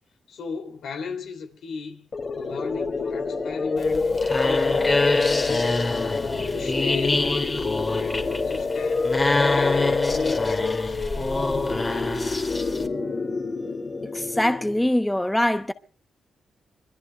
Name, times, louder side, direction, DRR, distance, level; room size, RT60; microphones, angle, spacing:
voice 1, 0.3-2.1 2.3-5.9 6.5-9.1 9.4-11.0, left 5 dB, 85° left, 2.7 m, -35 dB
sound 1, 2.1-14.9, left 3 dB, 45° left, 2.5 m, -27 dB
sound 2, 3.8-12.9, left 2 dB, 30° left, 2.2 m, -26 dB
voice 2, 14.1-15.7, left 1 dB, 10° left, 0.8 m, -23 dB
26.0 x 22.0 x 2.3 m
cardioid pair, 80°, 0 cm